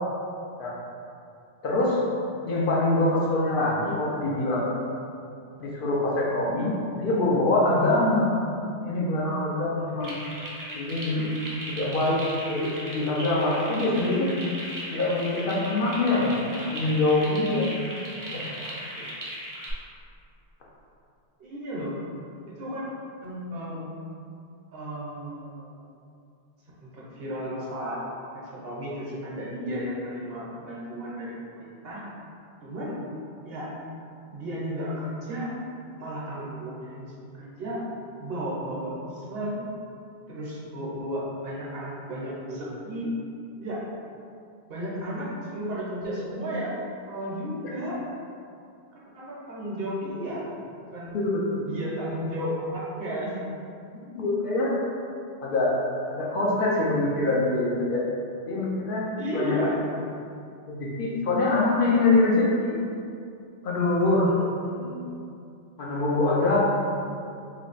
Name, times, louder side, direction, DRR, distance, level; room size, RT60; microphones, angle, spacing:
voice 1, 1.6-2.0 2.5-4.6 5.6-8.3 8.8-10.1 10.7-11.3 11.7-12.2 12.4-14.3 14.9-17.7 18.3-18.7 51.1-51.6 54.1-54.8 55.4-55.8 56.1-58.0 58.5-59.1 59.3-59.6 60.7-62.8 63.6-64.3 65.8-66.6, left 2 dB, 55° left, -4 dB, 0.8 m, -24 dB
sound 1, 10.0-19.7, right 1 dB, 30° right, 0.4 m, -37 dB
voice 2, 21.4-22.0 22.6-22.9 23.2-23.9 24.7-25.7 26.8-28.0 28.3-32.0 32.6-33.0 33.4-33.7 34.3-35.5 36.0-37.8 38.2-39.6 40.3-43.1 43.6-43.8 44.7-46.7 47.1-48.0 48.9-51.2 51.6-53.4 59.2-59.8 64.3-65.0 66.4-66.6, equal, 65° right, -6 dB, 1.0 m, -34 dB
3.1 x 2.2 x 3.9 m, 2.5 s
omnidirectional pair, 1.1 m